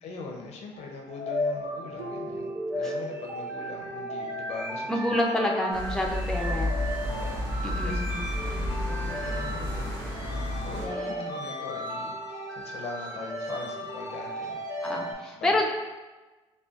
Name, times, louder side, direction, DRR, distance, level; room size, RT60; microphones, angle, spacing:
voice 1, 0.0-5.2 6.5-6.8 7.0-8.0 8.4-14.6 14.9-15.7, left 3 dB, 70° left, 1 dB, 0.6 m, -41 dB
sound 1, 0.7-15.1, equal, 25° right, 1.3 m, -35 dB
Harp, 2.0-3.8 4.1-4.5 5.1-5.2, right 1 dB, 75° right, 0.5 m, -43 dB
voice 2, 4.9-6.7 7.6-8.2 10.8-11.3 14.8-15.7, left 1 dB, 5° left, 0 dB, 0.5 m, -28 dB
sound 2, 5.7-10.8, left 1 dB, 50° right, 1.5 m, -31 dB
5.1 x 2.3 x 2.4 m, 1.2 s
cardioid pair, 85°, 11 cm